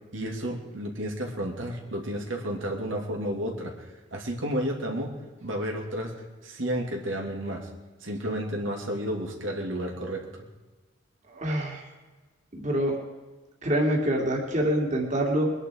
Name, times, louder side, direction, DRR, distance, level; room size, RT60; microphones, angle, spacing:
voice 1, 0.1-3.7 4.1-5.1 5.4-6.1 6.4-7.7 8.0-10.4, equal, 80° right, 0 dB, 2.9 m, -31 dB
voice 2, 11.3-11.8 12.5-13.0 13.6-15.5, right 1 dB, 40° right, 0 dB, 2.7 m, -26 dB
22.5 x 11.0 x 4.8 m, 1.3 s
head